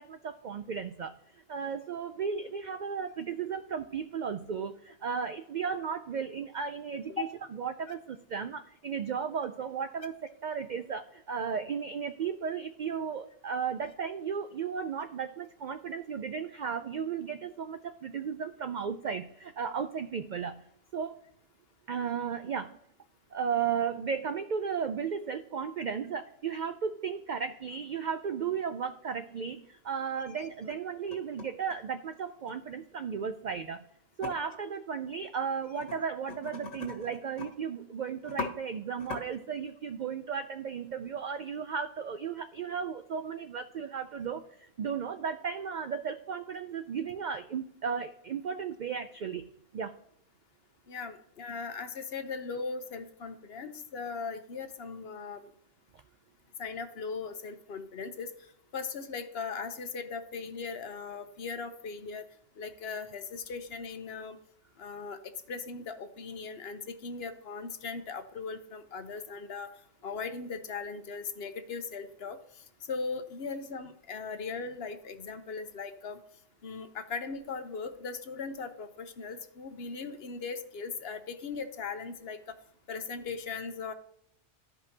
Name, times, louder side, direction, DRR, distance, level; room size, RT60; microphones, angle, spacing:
voice 1, 0.0-20.6 20.9-21.2 21.9-22.8 23.3-33.9 34.2-50.0, right 6 dB, 80° right, 9 dB, 0.4 m, -35 dB
sound 1, 29.6-29.7 30.4-30.8 31.1-32.5 34.2-34.3 35.7-36.0 36.3-37.5 37.8-37.9 38.2-38.5 39.0-39.2, left 4 dB, 80° left, 1.9 m, -39 dB
voice 2, 50.9-55.5 56.6-58.3 58.7-62.2 62.6-64.4 64.8-69.7 70.0-76.2 76.6-82.5 82.9-83.9, left 5 dB, 55° left, 9 dB, 0.9 m, -39 dB
13.5 x 5.4 x 2.8 m, 0.73 s
omnidirectional pair, 1.3 m